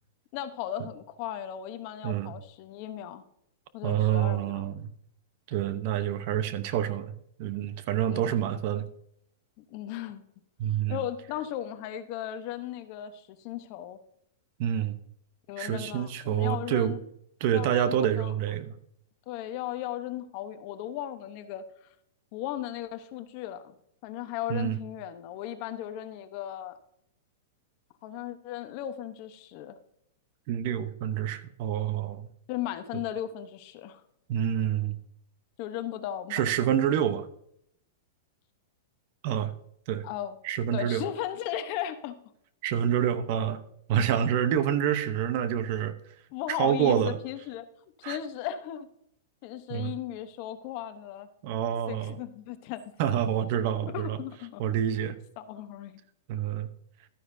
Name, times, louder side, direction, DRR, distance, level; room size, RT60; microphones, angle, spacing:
voice 1, 0.3-3.2 3.7-4.6 8.1-8.4 9.6-10.2 10.9-14.0 15.5-17.0 17.5-18.3 19.3-21.6 22.3-23.8 24.0-26.8 28.0-29.8 32.5-34.0 35.6-36.4 40.0-40.4 40.7-42.2 46.3-47.6 48.0-48.9 49.4-51.3 51.9-52.9 53.9-54.9 55.4-56.0, left 11 dB, 40° left, 10 dB, 0.9 m, -36 dB
voice 2, 2.0-2.3 3.8-4.9 5.5-8.9 10.6-11.0 14.6-15.0 15.6-17.0 17.4-18.7 24.5-24.8 30.5-32.3 32.9-33.0 34.3-35.0 36.3-37.3 39.2-39.5 39.9-40.1 40.4-41.0 42.6-43.6 43.9-45.9 46.5-47.2 48.0-48.2 49.7-49.9 51.4-52.2 53.0-54.2 54.6-55.2 56.3-56.7, right 10 dB, 45° right, 13 dB, 0.8 m, -27 dB
13.0 x 9.7 x 2.7 m, 0.72 s
hypercardioid pair, 155°, 0 cm